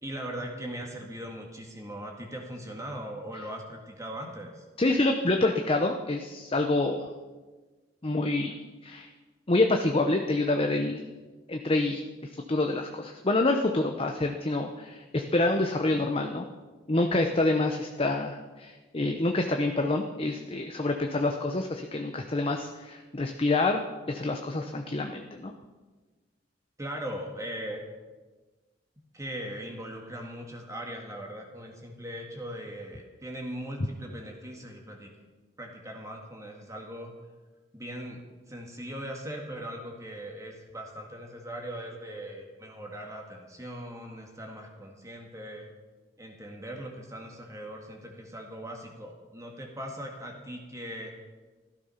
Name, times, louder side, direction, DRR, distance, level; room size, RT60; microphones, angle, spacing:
voice 1, 0.0-4.6 26.8-27.8 29.1-35.1 35.6-37.1 37.7-45.7 46.2-51.1, equal, 20° right, 1 dB, 1.9 m, -40 dB
voice 2, 4.8-7.1 8.0-8.5 8.8-9.1 9.5-11.0 11.5-12.0 12.5-16.5 16.9-23.8 24.1-25.5, left 2 dB, 30° left, 4 dB, 0.8 m, -27 dB
15.0 x 13.0 x 5.7 m, 1.3 s
head